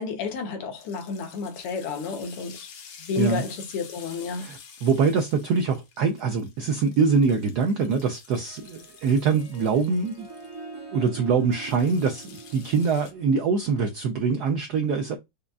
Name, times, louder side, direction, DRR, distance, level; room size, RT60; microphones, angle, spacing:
voice 1, 0.0-2.7 3.0-4.5, left 4 dB, 85° left, 1.8 m, -31 dB
sound 1, 0.8-10.5 11.4-13.1, left 6 dB, 60° left, 1.5 m, -49 dB
voice 2, 4.3-10.3 10.9-15.2, right 5 dB, 85° right, 0.9 m, -24 dB
Harp, 8.3-13.9, right 4 dB, 25° right, 0.5 m, -44 dB
5.0 x 2.3 x 2.3 m
omnidirectional pair, 2.4 m